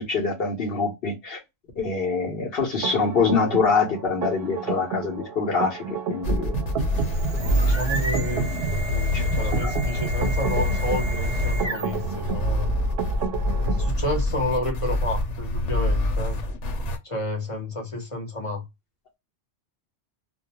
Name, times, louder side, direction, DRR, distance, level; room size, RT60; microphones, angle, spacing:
voice 1, 0.0-1.4 1.8-6.6 7.5-7.8 9.1-9.2 9.6-9.7, left 4 dB, 60° left, 0.8 m, -25 dB
sound 1, 2.8-13.9, right 6 dB, 65° right, 0.7 m, -32 dB
sound 2, 6.2-17.0, left 1 dB, 85° left, 0.9 m, -25 dB
sound 3, 6.8-12.1, right 3 dB, 30° right, 0.8 m, -34 dB
voice 2, 7.3-12.7 13.6-16.4 17.0-18.6, left 2 dB, 30° left, 0.8 m, -30 dB
2.3 x 2.1 x 2.7 m
omnidirectional pair, 1.2 m